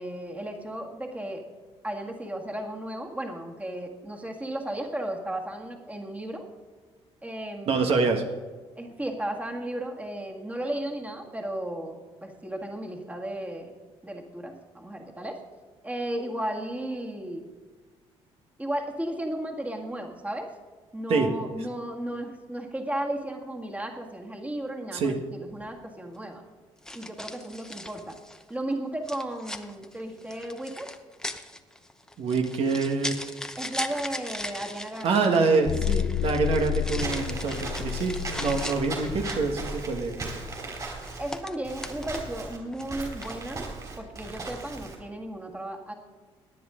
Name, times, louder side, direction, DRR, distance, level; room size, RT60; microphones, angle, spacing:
voice 1, 0.0-1.4 1.8-6.4 7.2-7.9 8.7-13.7 14.0-15.4 15.8-17.4 18.6-20.5 20.9-26.4 26.9-28.2 28.5-30.9 33.6-35.2 41.2-43.6 44.0-45.9, right 1 dB, 15° right, 2 dB, 1.8 m, -34 dB
voice 2, 7.7-8.2 21.1-21.3 24.9-25.1 32.2-33.3 35.0-40.3, right 4 dB, 65° right, 3 dB, 1.5 m, -25 dB
sound 1, 25.5-25.7 26.8-28.5 29.1-39.5 40.7-42.4 42.7-43.4, left 1 dB, 5° left, 0.8 m, -39 dB
sound 2, 35.6-40.6, left 11 dB, 50° left, 0.4 m, -31 dB
Walk footsteps / Squeak, 37.0-45.0, right 3 dB, 35° right, 4.0 m, -37 dB
18.0 x 10.0 x 3.8 m, 1.4 s
cardioid pair, 105°, 11 cm